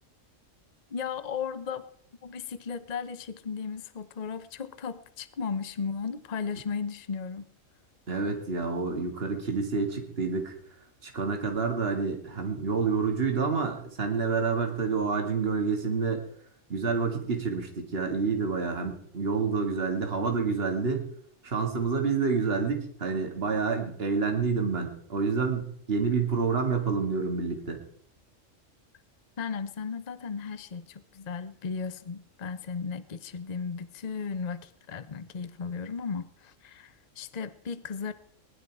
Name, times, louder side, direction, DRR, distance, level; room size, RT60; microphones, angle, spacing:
voice 1, 0.9-1.9 2.2-7.5 29.4-38.1, left 5 dB, 35° left, 13 dB, 0.8 m, -35 dB
voice 2, 8.1-10.6 11.0-16.2 16.7-21.1 21.4-27.8, right 5 dB, 50° right, 3 dB, 2.4 m, -28 dB
21.0 x 11.0 x 4.7 m, 0.64 s
omnidirectional pair, 1.3 m